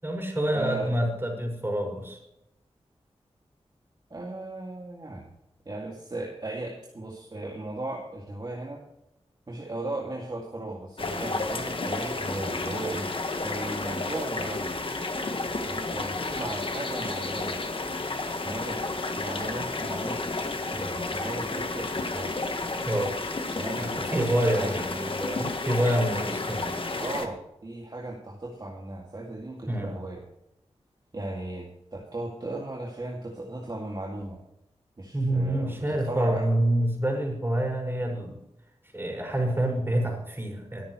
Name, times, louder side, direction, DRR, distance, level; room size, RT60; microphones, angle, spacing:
voice 1, 0.0-2.2 22.8-23.2 23.8-26.8 29.7-29.9 35.1-38.4 38.9-40.8, right 1 dB, 20° right, 1 dB, 5.7 m, -27 dB
voice 2, 0.5-0.9 4.1-5.3 5.7-8.8 9.5-14.8 15.6-17.6 18.4-18.8 19.1-22.5 23.5-24.3 24.6-24.8 27.0-30.2 31.1-34.4 35.0-36.4, right 2 dB, 40° right, -2 dB, 2.3 m, -36 dB
sound 1, 11.0-27.3, left 3 dB, 50° left, 1.6 m, -31 dB
23.0 x 9.3 x 3.2 m, 0.86 s
wide cardioid pair, 60°, 11 cm